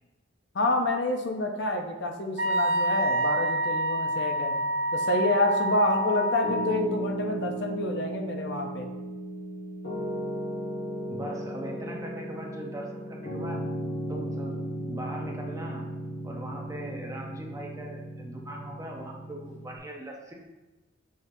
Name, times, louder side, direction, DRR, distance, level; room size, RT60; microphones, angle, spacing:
voice 1, 0.5-4.5 4.9-8.9, left 2 dB, 60° left, 4 dB, 0.6 m, -28 dB
Wind instrument woodwind instrument, 2.4-6.8, right 1 dB, 80° right, 1.1 m, -27 dB
Piano, 6.4-19.8, right 1 dB, 75° left, 1.7 m, -35 dB
voice 2, 11.1-13.6 14.1-14.6 14.9-15.8 16.2-20.3, right 1 dB, 15° right, -1 dB, 0.7 m, -40 dB
6.2 x 5.6 x 2.7 m, 1.1 s
head